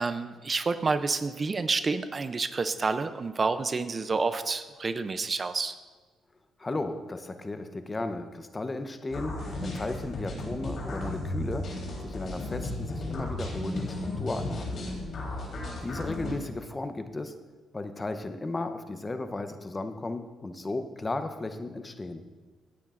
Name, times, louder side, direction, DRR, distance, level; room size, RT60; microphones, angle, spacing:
voice 1, 0.0-5.8, right 4 dB, 35° right, 11 dB, 0.5 m, -29 dB
voice 2, 6.6-11.7 12.0-14.9 15.3-15.5 15.8-17.3 17.7-22.2, left 2 dB, 25° left, 9 dB, 0.7 m, -35 dB
sound 1, 9.1-16.3, left 2 dB, 55° left, 3.5 m, -34 dB
16.0 x 9.6 x 2.5 m, 1.4 s
cardioid pair, 90°, 0 cm